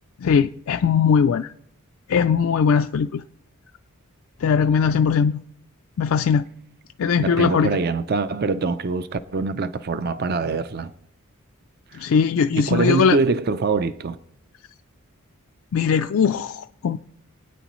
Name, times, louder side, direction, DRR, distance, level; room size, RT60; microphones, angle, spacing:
voice 1, 0.2-1.5 2.1-3.2 4.4-5.4 6.0-6.4 7.0-7.7 11.9-13.2 15.7-17.0, left 6 dB, 70° left, 0.4 m, -20 dB
voice 2, 7.2-10.9 11.9-12.1 12.6-14.2, right 4 dB, 45° right, 0.4 m, -24 dB
24.0 x 9.2 x 3.1 m
head